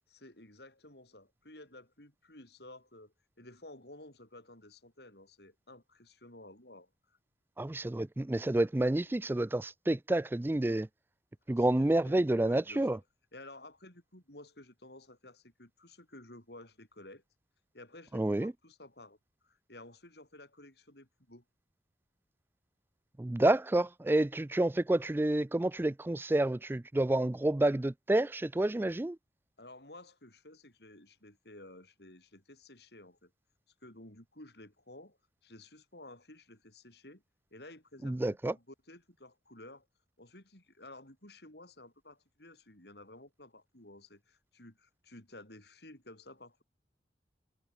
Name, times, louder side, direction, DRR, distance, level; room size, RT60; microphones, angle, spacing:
voice 1, 0.1-7.2 11.6-13.0 13.3-17.2 17.7-19.2 19.4-21.4 29.6-33.3 33.8-35.2 35.4-37.2 37.5-39.9 40.2-46.6, left 1 dB, 65° left, 7.3 m, -53 dB
voice 2, 7.6-10.9 11.5-13.0 18.1-18.5 23.2-29.2 38.0-38.5, right 1 dB, 10° right, 0.3 m, -29 dB
head